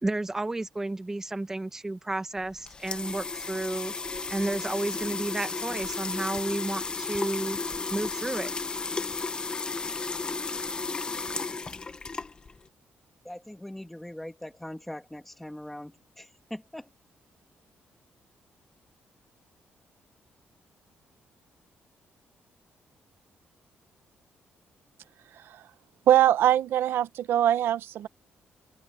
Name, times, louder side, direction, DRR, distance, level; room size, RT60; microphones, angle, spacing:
voice 1, 0.0-3.9 4.3-7.6 7.9-8.5, right 2 dB, 10° right, 1.5 m, -32 dB
sound 1, 2.4-12.7, left 4 dB, 25° left, 1.0 m, -34 dB
voice 2, 13.2-16.9, left 1 dB, 5° left, 2.4 m, -41 dB
voice 3, 26.1-28.1, right 11 dB, 80° right, 1.0 m, -22 dB
open air
cardioid pair, 165°, 4 cm